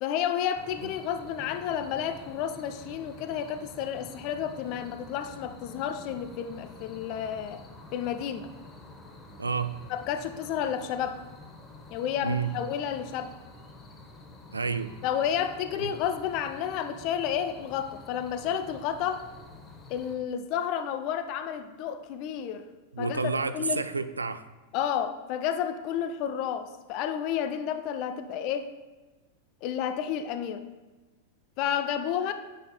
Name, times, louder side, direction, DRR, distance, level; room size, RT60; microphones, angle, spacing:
voice 1, 0.0-7.6 7.9-8.5 9.9-11.2 11.9-13.3 15.0-19.3 19.9-22.7 23.0-23.8 24.7-28.7 29.6-30.6 31.6-32.3, left 9 dB, 45° left, 9 dB, 0.4 m, -31 dB
sound 1, 0.5-20.2, left 2 dB, 20° left, 0.9 m, -48 dB
voice 2, 9.4-9.8 12.2-12.6 14.5-14.9 15.8-15.9 22.9-24.5, right 4 dB, 80° right, 12 dB, 0.3 m, -30 dB
9.0 x 5.2 x 2.2 m, 1.2 s
figure-of-eight pair, 90°, 0 cm